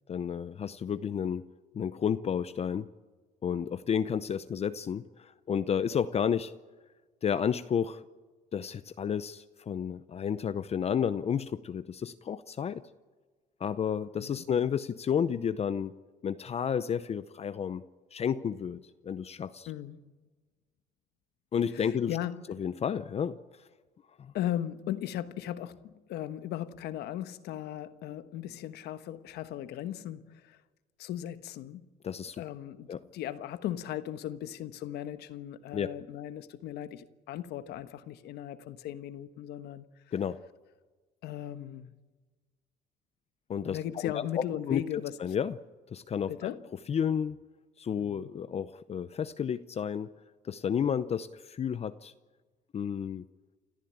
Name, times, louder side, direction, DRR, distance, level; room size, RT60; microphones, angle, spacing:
voice 1, 0.1-1.5 1.7-2.9 3.4-6.5 7.2-8.0 8.5-12.8 13.6-15.9 16.2-17.8 18.1-19.7 21.5-22.2 22.6-23.4 24.2-24.3 32.0-32.4 32.9-33.0 35.7-35.9 40.1-40.4 43.5-43.8 44.0-44.2 44.7-44.8 45.2-45.6 45.9-46.5 46.9-47.4 47.8-50.1 50.4-52.1 52.7-53.2, left 8 dB, 40° left, 0.7 m, -31 dB
voice 2, 19.7-20.1 21.7-22.4 24.3-30.6 31.0-31.9 32.4-39.9 41.2-41.9 43.6-45.2 46.3-46.6 48.0-48.3, left 12 dB, 75° left, 1.3 m, -37 dB
28.5 x 14.0 x 8.8 m
cardioid pair, 110°, 17 cm